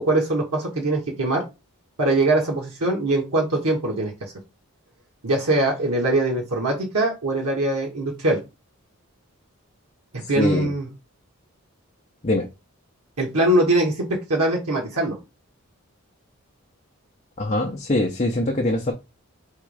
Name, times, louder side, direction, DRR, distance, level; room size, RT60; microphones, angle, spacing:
voice 1, 0.0-1.4 2.0-4.3 5.2-8.4 10.3-10.9 13.2-15.2, right 2 dB, 85° right, 1.4 m, -22 dB
voice 2, 10.4-10.7 12.2-12.5 17.4-18.9, left 1 dB, 30° left, 0.6 m, -23 dB
3.6 x 3.0 x 4.8 m
head